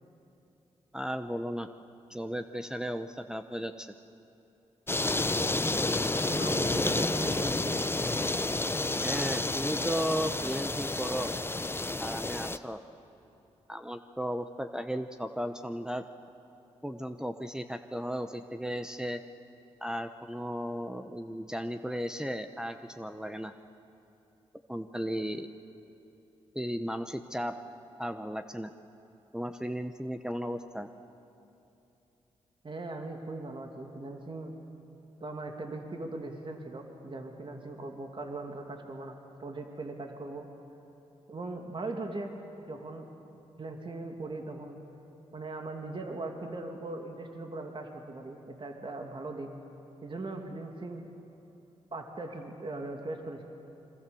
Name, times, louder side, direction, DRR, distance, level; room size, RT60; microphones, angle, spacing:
voice 1, 0.9-1.7 2.1-3.9 9.0-11.3 12.0-12.8 13.7-16.0 16.8-19.2 19.8-23.5 24.7-25.5 26.5-27.5 28.0-28.7 29.3-30.9, equal, 5° right, 8 dB, 1.0 m, -35 dB
sound 1, 4.9-12.6, left 2 dB, 20° left, 0.9 m, -30 dB
voice 2, 6.3-7.9 32.6-34.5 35.2-40.5 41.3-42.3 42.7-43.1 43.6-44.8 45.3-49.5 50.0-51.0 51.9-53.4, right 2 dB, 45° right, 3 dB, 2.7 m, -39 dB
27.0 x 23.5 x 7.1 m, 2.9 s
supercardioid pair, 50°, 12 cm